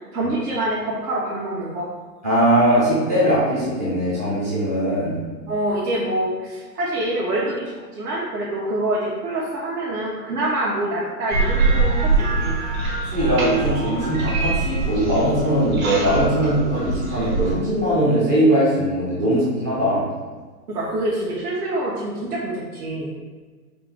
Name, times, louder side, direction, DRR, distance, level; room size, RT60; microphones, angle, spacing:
voice 1, 0.1-1.9 5.5-12.6 20.7-23.1, right 1 dB, 75° right, -7 dB, 1.1 m, -26 dB
voice 2, 2.2-5.2 13.1-20.0, right 1 dB, 15° right, -8 dB, 0.3 m, -20 dB
sound 1, 11.3-17.6, right 3 dB, 60° right, 1.4 m, -23 dB
4.4 x 2.6 x 3.6 m, 1.4 s
hypercardioid pair, 130°, 46 cm